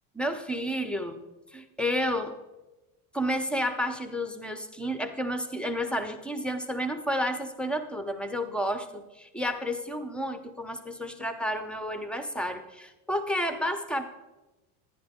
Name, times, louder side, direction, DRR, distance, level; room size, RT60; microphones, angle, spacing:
voice 1, 0.1-1.2 1.5-2.3 3.1-14.0, equal, ahead, 8 dB, 0.6 m, -31 dB
11.0 x 9.8 x 3.6 m, 1.1 s
supercardioid pair, 115°, 46 cm